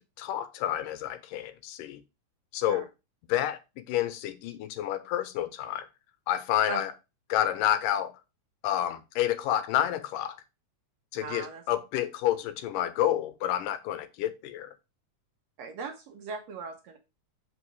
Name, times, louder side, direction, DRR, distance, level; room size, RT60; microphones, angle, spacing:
voice 1, 0.0-2.0 2.5-2.8 3.3-3.6 3.9-5.9 6.3-6.9 7.3-8.1 8.6-10.4 11.1-14.7, left 12 dB, 85° left, 2.3 m, -29 dB
voice 2, 11.2-11.6 15.6-17.0, right 6 dB, 65° right, 1.8 m, -38 dB
6.3 x 5.3 x 4.7 m
omnidirectional pair, 3.9 m